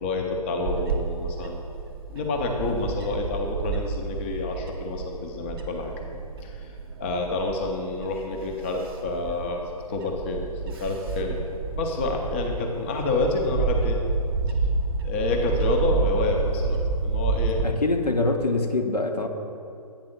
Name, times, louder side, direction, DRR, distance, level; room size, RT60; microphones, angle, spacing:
voice 1, 0.0-1.6 2.1-5.9 6.4-6.7 7.0-9.6 9.9-11.4 11.7-14.0 15.0-17.6, left 3 dB, 20° left, 2 dB, 0.4 m, -28 dB
Bird / Wind, 0.6-17.6, right 4 dB, 35° right, 0.7 m, -29 dB
voice 2, 17.6-19.3, left 2 dB, 80° left, 4 dB, 0.9 m, -24 dB
8.7 x 3.4 x 6.5 m, 2.5 s
figure-of-eight pair, 135°, 20 cm